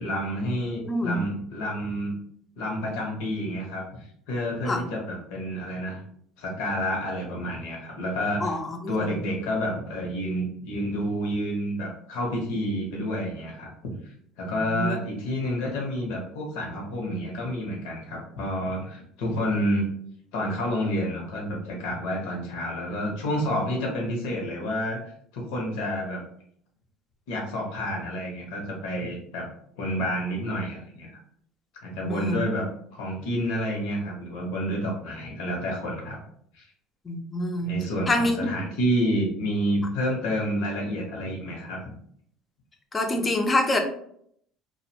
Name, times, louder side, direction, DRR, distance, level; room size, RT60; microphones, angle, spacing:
voice 1, 0.0-2.1 2.6-6.0 6.4-8.6 8.9-19.9 20.3-25.0 25.3-26.2 27.3-29.5 29.8-31.1 31.8-32.7 32.9-36.2 36.5-36.7 37.6-41.9, equal, 80° left, -2 dB, 0.8 m, -29 dB
voice 2, 0.8-1.2 4.7-4.8 8.4-9.1 14.5-15.0 32.1-32.4 37.1-37.8 38.1-38.5 42.9-43.8, left 1 dB, 20° left, 4 dB, 0.5 m, -26 dB
2.6 x 2.1 x 2.7 m, 0.66 s
supercardioid pair, 115°, 0 cm